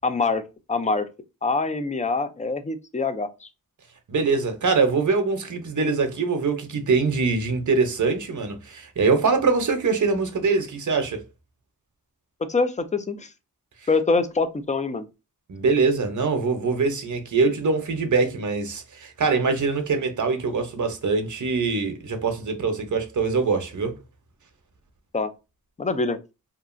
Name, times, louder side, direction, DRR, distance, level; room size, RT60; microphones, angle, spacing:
voice 1, 0.0-0.4 0.7-1.1 1.4-3.5 12.5-13.3 13.9-15.1 25.1-25.3 25.8-26.2, left 3 dB, 20° left, 0.4 m, -24 dB
voice 2, 4.1-11.2 15.5-24.0, right 4 dB, 60° right, 0.7 m, -23 dB
2.8 x 2.4 x 2.4 m
wide cardioid pair, 75°, 35 cm